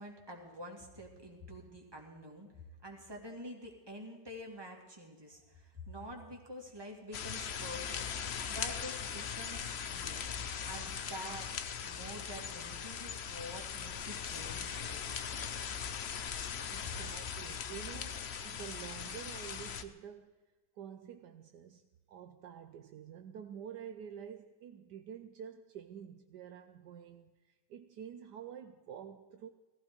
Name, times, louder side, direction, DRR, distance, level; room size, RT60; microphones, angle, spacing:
voice 1, 0.0-2.5 2.8-10.3 10.6-11.5 11.8-15.5, equal, 15° right, 2.5 m, -48 dB
sound 1, 7.1-19.8, left 7 dB, 50° left, 0.8 m, -40 dB
voice 2, 16.7-20.4 20.7-29.5, right 8 dB, 70° right, 1.3 m, -48 dB
17.5 x 14.5 x 5.2 m
omnidirectional pair, 1.9 m